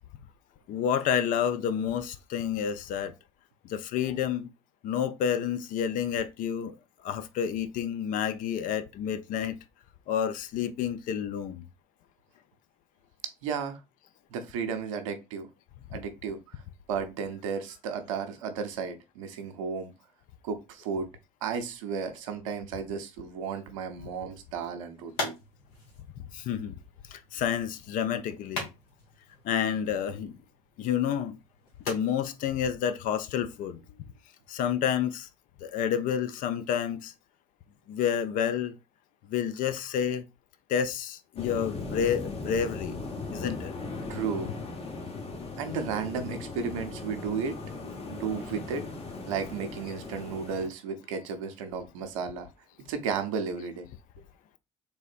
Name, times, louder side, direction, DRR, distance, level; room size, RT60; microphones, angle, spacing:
voice 1, 0.7-3.1 3.7-4.5 4.8-6.7 7.0-9.6 10.1-11.6 15.9-16.0 26.3-26.8 27.1-28.7 29.4-30.4 30.8-31.4 31.8-33.8 34.5-35.3 35.6-37.1 37.9-38.8 39.3-40.2 40.7-43.0 43.3-43.7 47.3-47.4 47.8-48.6, left 8 dB, 55° left, 0.5 m, -29 dB
voice 2, 13.4-13.8 14.3-15.5 15.9-16.6 16.9-19.9 20.4-21.1 21.4-25.4 44.1-44.5 45.6-47.6 48.1-48.9 49.3-52.5 52.8-53.9, right 6 dB, 75° right, 0.6 m, -33 dB
sound 1, 24.3-34.0, left 2 dB, 70° left, 1.2 m, -43 dB
sound 2, 41.4-50.7, left 3 dB, 35° left, 1.0 m, -38 dB
3.4 x 3.3 x 2.5 m
figure-of-eight pair, 50°, 17 cm